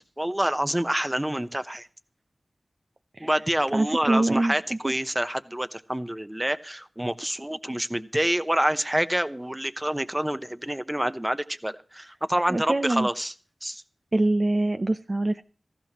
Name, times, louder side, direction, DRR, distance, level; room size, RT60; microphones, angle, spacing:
voice 1, 0.2-1.9 3.2-13.3 13.6-13.8, right 1 dB, 10° right, 12 dB, 0.9 m, -27 dB
voice 2, 3.7-4.5 12.5-13.1 14.1-15.4, right 2 dB, 35° right, 8 dB, 0.6 m, -24 dB
18.0 x 15.0 x 3.1 m, 0.39 s
wide cardioid pair, 65°, 0 cm